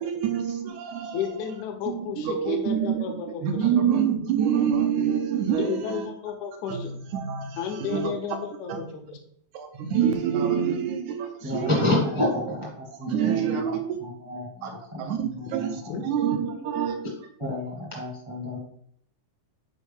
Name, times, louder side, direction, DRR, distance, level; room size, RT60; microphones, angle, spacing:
voice 1, 0.0-1.5 1.9-3.0 3.4-6.1 6.7-8.1 8.7-8.8 9.5-11.9 13.1-14.0 14.6-14.7 15.0-17.0, right 8 dB, 80° right, 4 dB, 1.9 m, -26 dB
voice 2, 1.1-3.6 5.6-6.9 7.6-9.2 15.9-16.2 16.4-16.6, left 7 dB, 75° left, 3 dB, 2.0 m, -32 dB
voice 3, 11.4-16.0 17.4-18.6, left 1 dB, 20° right, -4 dB, 0.7 m, -29 dB
6.3 x 4.6 x 3.5 m, 0.65 s
omnidirectional pair, 3.6 m